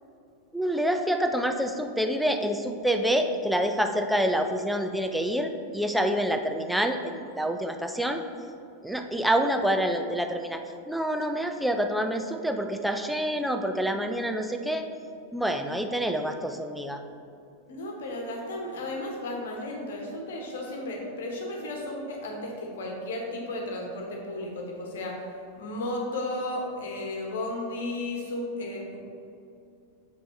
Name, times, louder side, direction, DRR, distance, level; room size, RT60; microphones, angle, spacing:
voice 1, 0.5-8.2 8.8-10.6 10.9-14.9 15.3-17.0, equal, ahead, 5 dB, 0.5 m, -27 dB
voice 2, 17.6-25.2 25.6-29.0, left 1 dB, 60° left, 0 dB, 1.2 m, -34 dB
7.1 x 5.2 x 3.2 m, 2.6 s
figure-of-eight pair, 90°, 0 cm